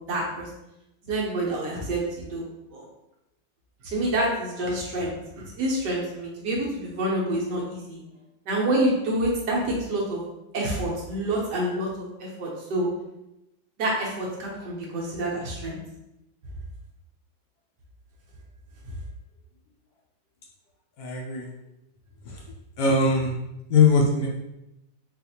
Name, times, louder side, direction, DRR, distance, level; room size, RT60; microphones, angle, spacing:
voice 1, 0.1-0.5 1.0-2.8 3.8-5.1 5.4-8.0 8.5-10.2 10.5-11.9 12.2-12.9 13.8-15.8, right 1 dB, 65° right, -3 dB, 1.2 m, -27 dB
voice 2, 21.0-21.5 22.8-23.3 23.7-24.3, left 4 dB, 70° left, -1 dB, 1.0 m, -20 dB
4.1 x 2.5 x 2.7 m, 0.90 s
omnidirectional pair, 2.2 m